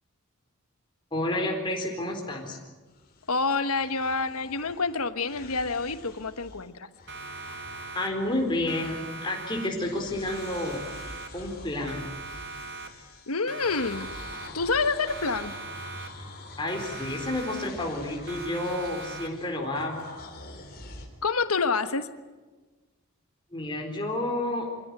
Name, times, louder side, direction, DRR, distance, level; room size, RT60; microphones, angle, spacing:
voice 1, 1.1-2.6 7.9-10.8 11.3-12.1 16.6-20.0 23.5-24.7, left 1 dB, 20° left, 0 dB, 4.1 m, -30 dB
sound 1, 2.9-6.7 6.9-9.5 9.7-21.1, left 2 dB, 45° left, 3.5 m, -46 dB
voice 2, 3.3-6.9 13.3-14.1 14.5-15.6 21.2-22.1, left 4 dB, 85° left, 11 dB, 1.3 m, -27 dB
Siren, 7.1-8.4 8.7-10.0 10.3-11.6 11.9-13.2 13.5-14.8 15.1-16.4 16.7-18.0 18.3-19.6, right 3 dB, 50° right, 1.9 m, -41 dB
24.5 x 16.5 x 9.8 m, 1.3 s
head